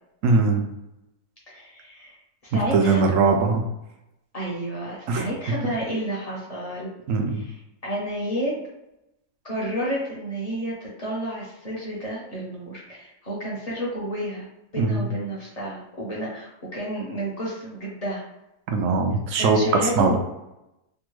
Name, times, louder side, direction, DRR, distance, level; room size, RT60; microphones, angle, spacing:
voice 1, 0.2-0.6 2.7-3.6 5.1-5.3 7.1-7.4 14.8-15.1 18.7-19.6 20.0-20.2, right 4 dB, 65° right, 4 dB, 0.8 m, -20 dB
voice 2, 1.5-2.1 2.4-3.1 4.3-6.9 7.3-7.6 7.8-8.5 9.4-14.5 14.7-18.2 19.3-20.2, equal, 35° left, -5 dB, 0.6 m, -31 dB
3.4 x 2.2 x 3.0 m, 0.89 s
omnidirectional pair, 1.7 m